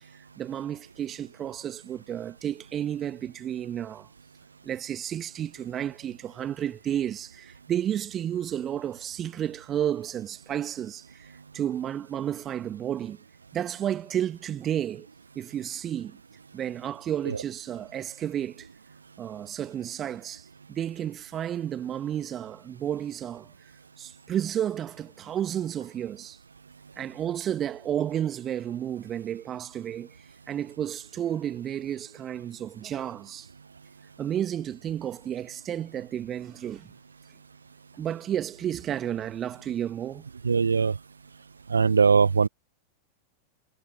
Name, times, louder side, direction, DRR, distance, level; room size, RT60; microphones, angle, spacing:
voice 1, 0.4-4.1 4.6-13.2 13.5-15.1 15.3-16.2 16.5-18.7 19.2-23.5 24.0-26.4 27.0-30.1 30.5-33.5 34.2-36.9 38.0-40.2, right 10 dB, 25° right, 1.8 m, -32 dB
voice 2, 40.4-40.9 41.7-42.5, right 5 dB, 75° right, 0.4 m, -21 dB
figure-of-eight pair, 90°, 0 cm